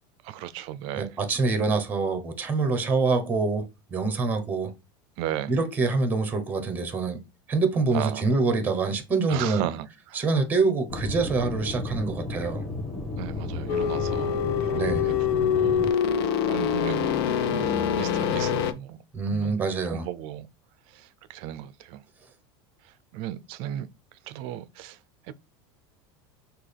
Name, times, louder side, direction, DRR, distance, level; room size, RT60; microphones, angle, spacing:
voice 1, 0.2-1.2 5.2-5.6 7.9-8.3 9.3-10.3 13.2-15.8 16.4-19.6 19.8-20.5 20.9-22.0 22.8-25.0 25.2-25.3, right 12 dB, 45° right, 0.5 m, -36 dB
voice 2, 1.0-4.7 5.5-7.2 7.5-9.6 10.1-12.6 14.7-15.1 19.1-20.1, right 3 dB, 15° right, 0.9 m, -25 dB
Aircraft / Engine, 10.9-15.9, left 2 dB, 5° left, 1.3 m, -33 dB
sound 1, 13.7-18.7, left 8 dB, 75° left, 0.7 m, -25 dB
6.0 x 2.4 x 3.3 m
supercardioid pair, 160°, 13 cm